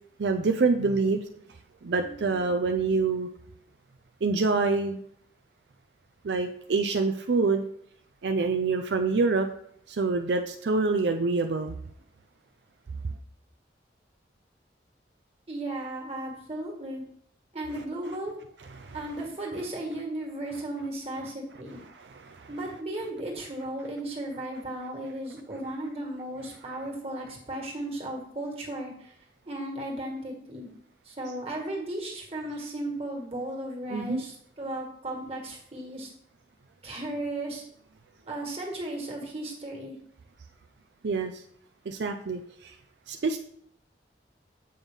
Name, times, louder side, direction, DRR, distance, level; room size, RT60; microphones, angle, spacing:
voice 1, 0.2-1.2 1.8-3.3 4.2-5.0 6.2-7.6 8.2-9.5 9.9-11.8 18.8-19.0 21.9-22.5 33.9-34.2 41.0-41.4 41.9-42.8 43.1-43.4, right 4 dB, 80° right, 5 dB, 0.5 m, -26 dB
voice 2, 2.0-2.3 15.5-17.0 17.5-18.4 18.9-21.8 22.5-29.2 29.5-30.7 31.1-36.1 36.8-37.6 38.3-40.0, right 1 dB, 35° right, 0 dB, 1.8 m, -35 dB
7.7 x 5.5 x 3.6 m, 0.69 s
head